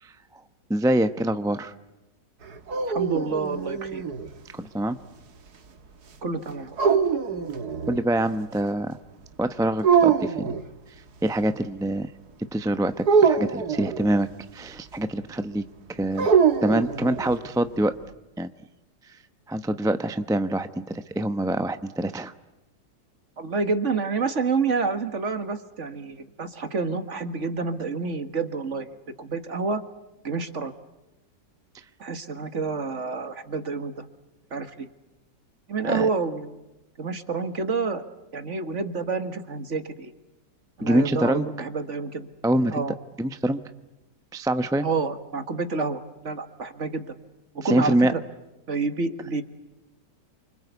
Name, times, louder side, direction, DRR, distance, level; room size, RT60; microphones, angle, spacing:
voice 1, 0.7-1.7 4.6-5.0 7.9-9.0 9.4-10.5 11.2-12.1 12.5-15.6 15.9-16.3 16.6-17.9 18.4-18.5 19.5-22.3 35.8-36.1 40.8-41.5 42.4-42.8 43.2-43.6 44.3-44.8 47.6-48.1, right 1 dB, 5° right, 9 dB, 0.5 m, -25 dB
sound 1, 2.4-4.3 6.8-8.0 9.8-10.6 13.0-14.1 16.2-17.4, right 6 dB, 60° right, 2.1 m, -23 dB
voice 2, 2.9-4.0 6.2-6.8 23.4-29.8 30.2-30.7 32.0-34.1 34.5-34.9 35.7-36.6 37.0-38.0 38.3-40.1 40.8-42.3 42.7-42.9 44.8-47.1 47.6-48.2 48.7-49.4, right 4 dB, 45° right, 9 dB, 1.9 m, -28 dB
28.5 x 25.5 x 8.3 m, 0.99 s
omnidirectional pair, 1.9 m